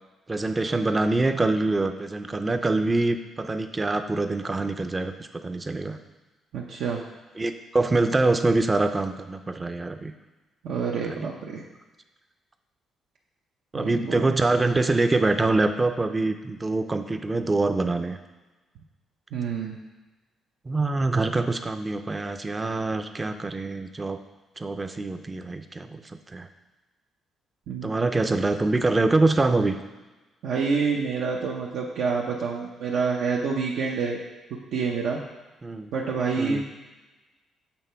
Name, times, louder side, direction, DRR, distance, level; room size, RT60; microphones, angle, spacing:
voice 1, 0.3-6.0 7.4-10.1 11.1-11.3 13.7-18.2 20.7-24.2 24.6-26.5 27.8-29.8 35.6-35.9 36.4-36.6, right 2 dB, 20° right, 8 dB, 0.5 m, -25 dB
voice 2, 6.5-7.0 10.6-11.7 13.7-14.3 19.3-19.8 27.7-28.1 30.4-34.2 34.7-35.2 35.9-36.6, right 5 dB, 80° right, -2 dB, 0.7 m, -27 dB
7.0 x 3.3 x 5.6 m, 1.2 s
cardioid pair, 90°, 0 cm